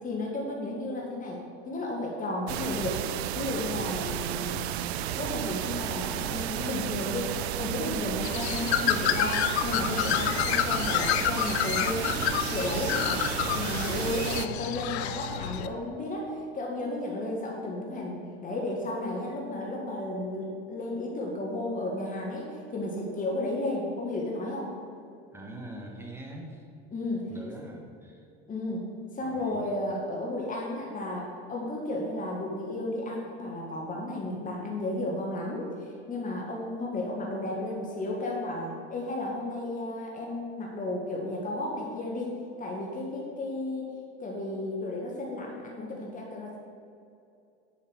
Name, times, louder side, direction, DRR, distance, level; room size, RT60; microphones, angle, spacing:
voice 1, 0.0-1.4 1.6-3.1 3.3-7.3 7.6-13.2 13.5-24.7 26.9-27.3 28.5-43.9 44.2-46.6, left 1 dB, 25° left, -2 dB, 1.7 m, -33 dB
sound 1, 2.5-14.5, right 12 dB, 80° right, 0.5 m, -33 dB
Bird, 8.2-15.7, left 11 dB, 85° left, 0.5 m, -29 dB
voice 2, 25.3-26.7 27.3-28.3 29.2-29.7, right 1 dB, 10° right, 1 dB, 1.6 m, -42 dB
8.2 x 5.6 x 6.2 m, 2.6 s
hypercardioid pair, 85°, 32 cm